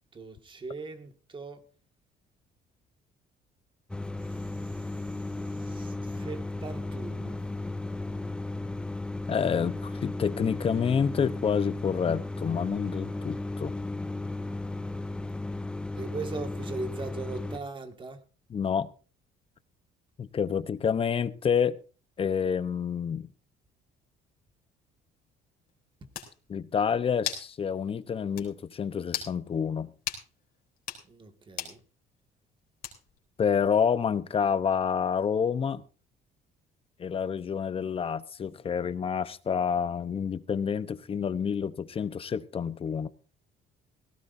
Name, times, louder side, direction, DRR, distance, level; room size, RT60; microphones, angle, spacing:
voice 1, 0.1-1.6 4.6-4.9 5.5-7.4 16.0-18.2 31.1-31.8, right 4 dB, 30° right, 2.0 m, -40 dB
sound 1, 3.9-17.6, left 2 dB, 5° left, 0.7 m, -35 dB
voice 2, 9.3-13.8 18.5-18.9 20.2-21.8 22.2-23.3 26.5-29.9 33.4-35.8 37.0-43.1, left 7 dB, 35° left, 0.9 m, -28 dB
sound 2, 25.7-25.8 26.1-26.3 27.2-27.5 27.9-28.0 28.4-28.5 29.1-29.3 30.1-30.2 30.8-31.0 31.6-31.8 32.8-33.2, left 9 dB, 65° left, 3.7 m, -35 dB
18.0 x 16.0 x 2.7 m
cardioid pair, 110°, 17 cm